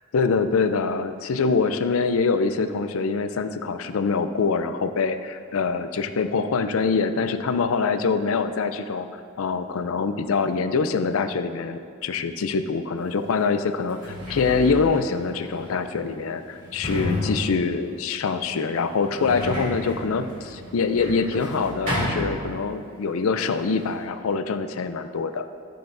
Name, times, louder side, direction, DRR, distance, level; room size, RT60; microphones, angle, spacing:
voice 1, 0.0-25.5, left 4 dB, 75° left, 10 dB, 0.4 m, -24 dB
Sliding door, 13.1-13.2 13.8-23.0 23.2-24.0, left 1 dB, 40° right, 2.2 m, -32 dB
13.5 x 6.8 x 2.6 m, 2.2 s
head